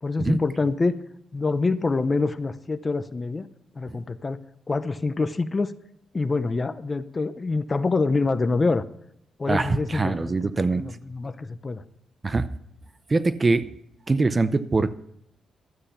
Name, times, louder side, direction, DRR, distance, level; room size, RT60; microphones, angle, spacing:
voice 1, 0.0-0.9 1.3-3.5 3.8-4.4 4.7-5.7 6.1-8.8 9.4-11.8, left 3 dB, 30° left, 13 dB, 0.7 m, -26 dB
voice 2, 9.5-10.8 12.2-12.5 13.1-13.7 14.1-15.0, right 3 dB, 25° right, 13 dB, 0.6 m, -23 dB
12.5 x 8.6 x 5.6 m, 0.76 s
cardioid pair, 105°, 0 cm